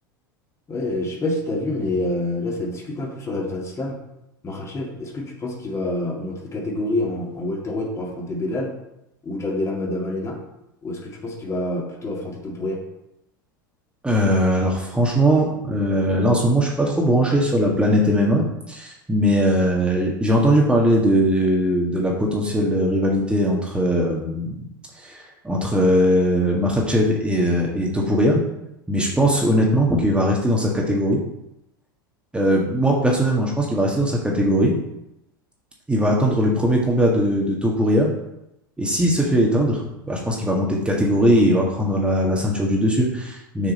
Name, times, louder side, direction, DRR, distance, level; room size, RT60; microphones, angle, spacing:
voice 1, 0.7-4.0 4.4-8.7 9.2-10.4 10.8-12.8, left 2 dB, 25° left, -1 dB, 2.2 m, -27 dB
voice 2, 14.0-24.6 24.9-28.4 28.9-31.2 32.3-34.7 35.9-38.1 38.8-43.7, equal, 10° right, -2 dB, 1.7 m, -20 dB
6.4 x 5.9 x 4.4 m, 0.86 s
hypercardioid pair, 85°, 12 cm